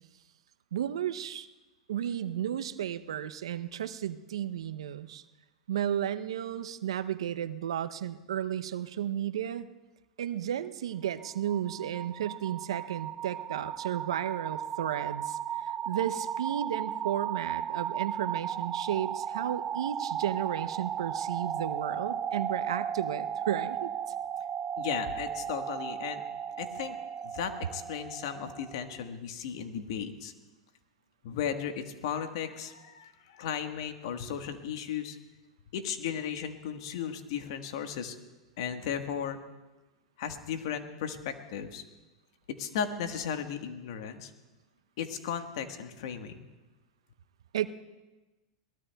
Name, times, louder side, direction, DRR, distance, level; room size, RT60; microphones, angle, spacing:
voice 1, 0.7-1.5 1.9-5.2 5.7-9.7 10.2-23.9 47.5-47.7, right 10 dB, 75° right, 12 dB, 0.6 m, -33 dB
sound 1, 11.1-28.9, right 8 dB, 25° right, 0.3 m, -35 dB
voice 2, 24.8-26.2 26.6-27.0 27.2-30.3 31.2-35.2 35.7-38.2 38.6-39.4 40.2-41.8 42.6-44.3 45.0-46.5, left 8 dB, 65° left, 6 dB, 1.4 m, -35 dB
22.5 x 18.5 x 2.3 m, 1.1 s
hypercardioid pair, 100°, 3 cm